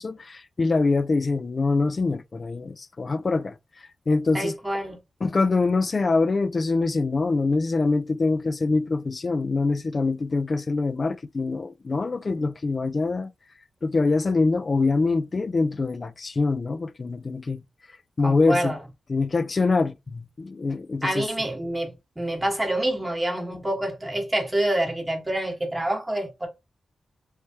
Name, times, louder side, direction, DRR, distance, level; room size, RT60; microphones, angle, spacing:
voice 1, 0.0-3.6 4.1-4.5 5.2-13.3 13.8-17.6 18.2-18.7 19.1-21.3, left 3 dB, 40° left, 0.3 m, -24 dB
voice 2, 4.3-5.0 5.5-5.6 18.2-18.8 21.0-26.5, right 1 dB, 15° right, 1.2 m, -27 dB
3.2 x 3.2 x 2.8 m
wide cardioid pair, 105°, 0 cm